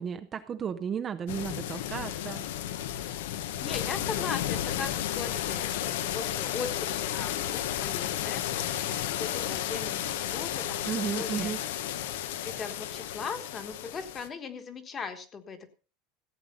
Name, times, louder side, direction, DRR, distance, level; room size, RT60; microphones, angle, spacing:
voice 1, 0.0-2.4 10.8-11.6, right 7 dB, 20° right, 9 dB, 0.6 m, -33 dB
sound 1, 1.3-14.3, left 11 dB, 85° left, 1.2 m, -33 dB
voice 2, 3.6-10.0 10.3-11.6 12.4-15.7, left 5 dB, 20° left, 9 dB, 1.4 m, -39 dB
15.0 x 9.0 x 5.5 m, 0.36 s
supercardioid pair, 180°, 0 cm